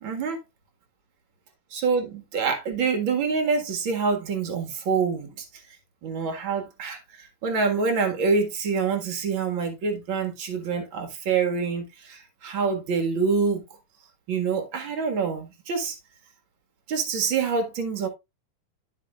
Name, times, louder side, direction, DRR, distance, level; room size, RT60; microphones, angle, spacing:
voice 1, 0.0-0.4 1.7-5.5 6.0-13.6 14.3-16.0 16.9-18.1, right 5 dB, 45° right, 2.1 m, -26 dB
12.5 x 5.9 x 2.4 m
omnidirectional pair, 4.0 m